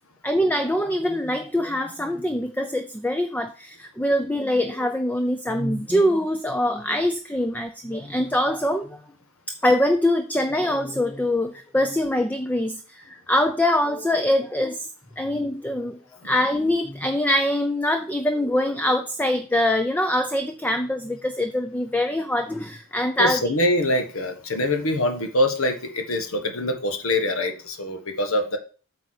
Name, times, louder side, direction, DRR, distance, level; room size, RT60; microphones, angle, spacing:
voice 1, 0.2-9.0 9.6-14.9 15.2-16.0 16.2-23.4, left 1 dB, 5° left, 7 dB, 0.5 m, -23 dB
voice 2, 23.2-28.6, left 1 dB, 65° left, 6 dB, 1.5 m, -24 dB
8.2 x 4.1 x 6.5 m, 0.37 s
head